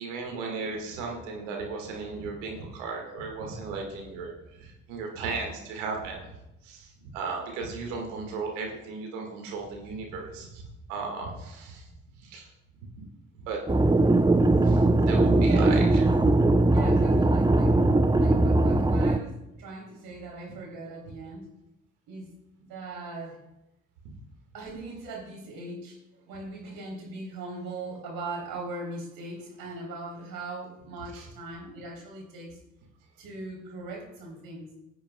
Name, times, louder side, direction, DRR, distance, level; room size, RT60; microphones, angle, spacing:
voice 1, 0.0-4.3 4.6-6.3 6.6-6.9 7.1-10.6 10.9-11.8 12.2-12.5 13.4-13.6 14.6-16.0, right 4 dB, 90° right, 1 dB, 1.9 m, -35 dB
sound 1, 13.7-19.2, right 2 dB, 10° right, 0.7 m, -20 dB
voice 2, 15.4-15.7 16.7-17.8 18.2-21.5 22.1-22.3 22.6-23.4 24.5-32.6 33.2-34.7, right 3 dB, 70° right, -1 dB, 3.5 m, -40 dB
16.5 x 8.6 x 2.3 m, 0.91 s
hypercardioid pair, 45°, 36 cm